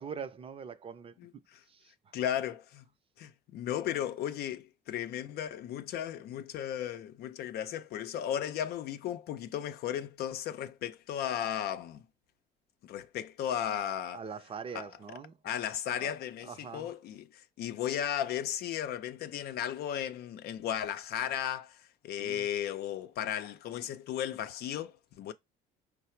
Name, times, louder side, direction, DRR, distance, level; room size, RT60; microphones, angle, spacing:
voice 1, 0.0-1.1 1.7-2.1 14.1-15.4 16.0-16.1 16.4-16.9 22.2-22.5, right 6 dB, 35° right, 0.6 m, -43 dB
voice 2, 1.2-1.6 2.1-2.8 3.2-12.0 12.8-14.2 14.7-14.9 15.4-21.8 22.0-25.3, left 10 dB, 70° left, 0.5 m, -35 dB
4.7 x 2.0 x 4.3 m
cardioid pair, 110°, 17 cm